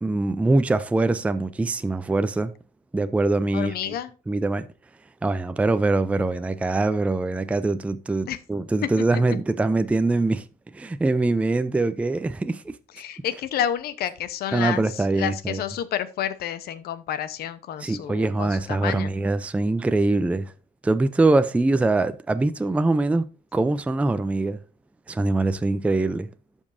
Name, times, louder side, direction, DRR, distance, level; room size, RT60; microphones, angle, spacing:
voice 1, 0.0-2.5 2.9-3.9 4.3-4.7 5.2-10.4 10.7-12.8 14.5-15.6 17.8-20.5 20.8-24.6 25.1-26.3, right 2 dB, 10° right, 0.4 m, -23 dB
voice 2, 3.5-4.1 8.3-8.4 8.8-9.2 12.9-19.1, left 10 dB, 70° left, 0.8 m, -30 dB
13.5 x 5.4 x 2.6 m
cardioid pair, 110°, 17 cm